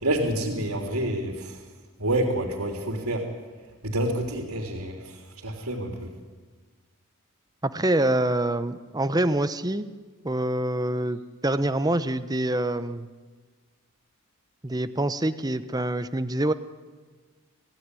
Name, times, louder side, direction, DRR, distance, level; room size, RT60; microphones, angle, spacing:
voice 1, 0.0-1.5 2.0-3.2 3.8-5.0 5.4-6.1, right 1 dB, 85° right, 1 dB, 3.4 m, -27 dB
voice 2, 7.6-9.9 10.2-13.1 14.6-16.5, right 1 dB, 15° right, 12 dB, 0.9 m, -26 dB
26.5 x 16.5 x 9.7 m, 1.4 s
head